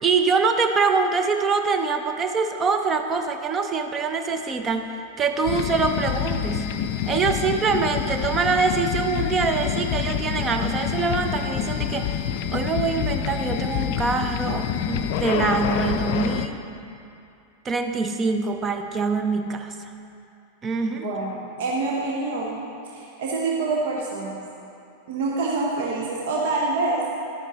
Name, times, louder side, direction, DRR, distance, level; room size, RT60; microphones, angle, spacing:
voice 1, 0.0-4.9 5.2-6.7 7.1-12.2 12.5-16.6 17.6-19.9 20.6-21.1, right 4 dB, 25° right, 6 dB, 0.7 m, -24 dB
sound 1, 5.5-16.5, left 9 dB, 50° left, 0.4 m, -27 dB
voice 2, 20.9-24.4 25.1-27.0, right 3 dB, 55° right, -2 dB, 1.0 m, -26 dB
11.5 x 9.9 x 3.0 m, 2.6 s
figure-of-eight pair, 90°, 0 cm